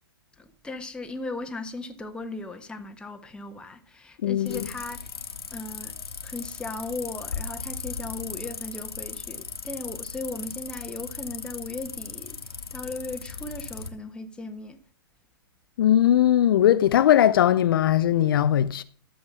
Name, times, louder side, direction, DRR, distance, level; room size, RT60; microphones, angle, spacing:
voice 1, 0.4-5.1 5.5-5.9 6.2-12.4 12.7-14.8, left 2 dB, 5° left, 1.3 m, -37 dB
voice 2, 4.2-4.6 15.8-18.8, left 11 dB, 65° left, 0.6 m, -19 dB
sound 1, 4.5-13.9, left 5 dB, 85° left, 1.6 m, -37 dB
12.5 x 7.4 x 6.1 m
hypercardioid pair, 120°, 13 cm